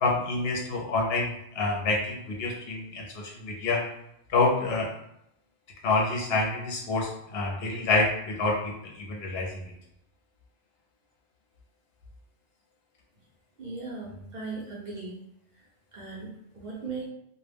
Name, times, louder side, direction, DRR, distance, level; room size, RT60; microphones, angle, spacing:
voice 1, 0.0-1.3 1.5-3.8 4.3-4.9 5.8-9.5, left 3 dB, 65° left, 0 dB, 0.8 m, -27 dB
voice 2, 13.6-15.2 15.9-16.3 16.5-17.1, right 3 dB, 50° right, -5 dB, 0.6 m, -37 dB
2.2 x 2.0 x 3.2 m, 0.76 s
omnidirectional pair, 1.1 m